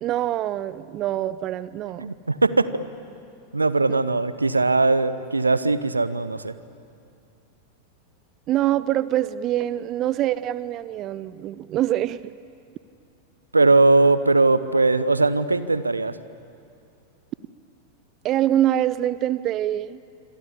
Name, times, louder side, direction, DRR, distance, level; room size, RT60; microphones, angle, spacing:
voice 1, 0.0-2.1 3.9-4.0 8.5-12.2 18.2-20.0, right 12 dB, 35° right, 17 dB, 0.6 m, -24 dB
voice 2, 2.0-2.8 3.5-6.5 13.5-16.2, right 3 dB, 80° right, 15 dB, 0.9 m, -20 dB
27.0 x 26.0 x 8.6 m, 2.4 s
figure-of-eight pair, 90°, 0 cm